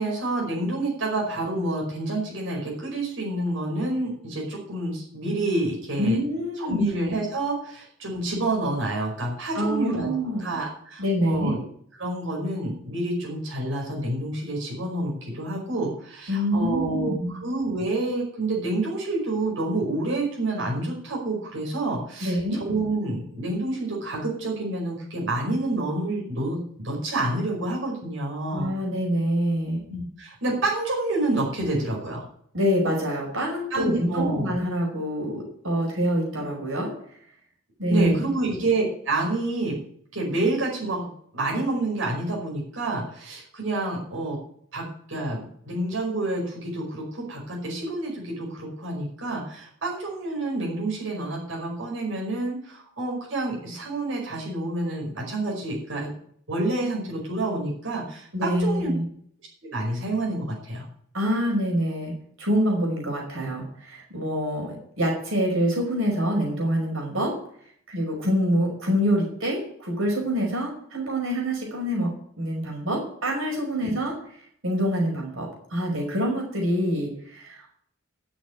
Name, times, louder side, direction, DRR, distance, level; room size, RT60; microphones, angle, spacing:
voice 1, 0.0-6.2 6.6-10.1 10.4-11.6 12.0-26.6 26.8-28.7 29.9-32.3 33.7-34.6 37.9-39.8 40.1-44.4 44.7-45.4 45.7-56.1 56.5-58.9 59.6-60.9 73.8-73.9, right 2 dB, 70° right, -3 dB, 5.3 m, -28 dB
voice 2, 6.0-6.9 9.5-10.5 11.0-11.6 16.3-17.4 22.2-22.6 28.5-29.8 32.5-36.9 37.8-38.1 58.3-59.0 61.1-67.4 67.9-72.1 72.4-74.1 74.6-77.7, equal, 85° right, 0 dB, 5.5 m, -26 dB
12.5 x 6.8 x 9.6 m, 0.64 s
head